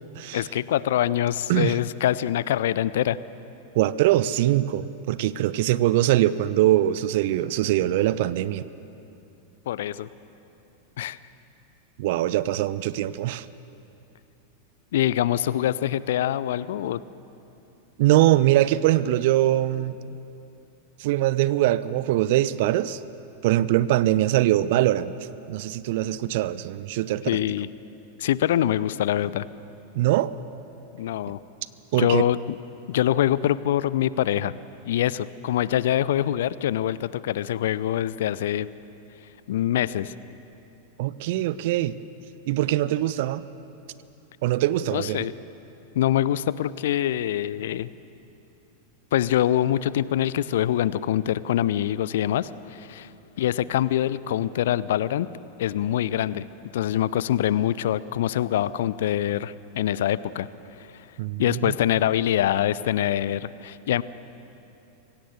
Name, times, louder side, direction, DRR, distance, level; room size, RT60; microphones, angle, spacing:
voice 1, 0.3-3.2 9.7-10.1 11.0-11.2 14.9-17.0 27.3-27.7 28.2-29.5 31.0-31.4 32.0-32.6 32.9-34.5 34.8-38.7 39.5-40.1 44.9-45.3 45.9-47.9 49.1-53.1 53.4-55.3 55.6-56.4 56.7-60.5 60.8-60.9 61.4-64.0, left 12 dB, 55° left, 18 dB, 0.5 m, -24 dB
voice 2, 3.7-8.6 12.0-13.4 18.0-20.0 21.0-23.0 23.4-25.1 25.5-27.4 30.0-30.3 31.9-32.2 41.0-41.9 42.5-43.4 44.4-45.3 61.2-61.7, right 14 dB, 50° right, 17 dB, 0.6 m, -22 dB
24.5 x 17.5 x 7.0 m, 2.8 s
figure-of-eight pair, 90°, 0 cm